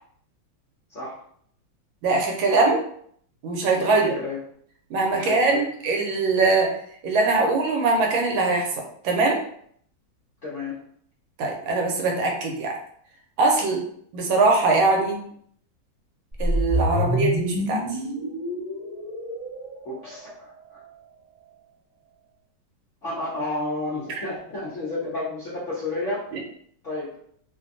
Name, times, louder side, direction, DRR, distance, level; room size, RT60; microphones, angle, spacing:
voice 1, 2.0-2.8 3.4-4.2 4.9-6.7 7.0-9.4 11.4-12.8 13.4-13.8 14.1-15.2 16.4-17.8 24.1-24.2, right 3 dB, 80° right, 1 dB, 1.4 m, -22 dB
voice 2, 3.8-4.4 5.1-5.6 10.4-10.8 17.0-17.1 19.8-20.8 23.0-26.2 26.8-27.1, left 2 dB, 60° left, -8 dB, 0.8 m, -31 dB
sound 1, 16.4-20.6, equal, 30° right, 0.8 m, -27 dB
3.2 x 2.2 x 2.5 m, 0.63 s
omnidirectional pair, 2.2 m